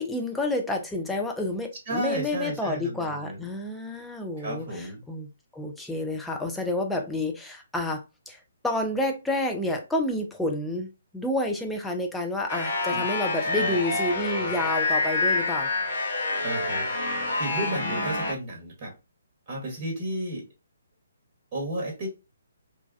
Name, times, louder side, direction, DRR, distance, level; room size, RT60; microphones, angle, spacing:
voice 1, 0.0-15.7 17.7-18.0, left 1 dB, 5° left, 0.4 m, -29 dB
voice 2, 1.9-3.4 4.4-5.0 12.9-13.1 13.5-13.8 14.1-14.5 16.4-18.9 19.5-20.5 21.5-22.1, right 1 dB, 30° right, 1.1 m, -33 dB
sound 1, 12.5-18.3, left 2 dB, 50° left, 0.8 m, -27 dB
3.1 x 2.2 x 2.4 m
figure-of-eight pair, 135°, 0 cm